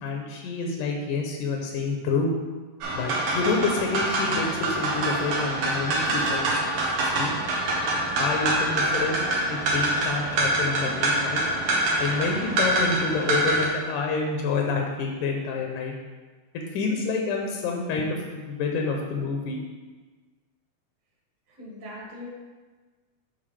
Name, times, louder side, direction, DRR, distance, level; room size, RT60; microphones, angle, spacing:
voice 1, 0.0-2.3 2.9-6.5 7.1-7.3 8.2-11.4 12.0-15.9 16.7-19.6, left 4 dB, 85° left, 1 dB, 2.3 m, -28 dB
sound 1, 2.8-13.7, right 2 dB, 85° right, 2.8 m, -25 dB
voice 2, 21.5-22.3, left 1 dB, 55° right, -5 dB, 2.8 m, -40 dB
11.5 x 3.8 x 3.3 m, 1.3 s
omnidirectional pair, 3.6 m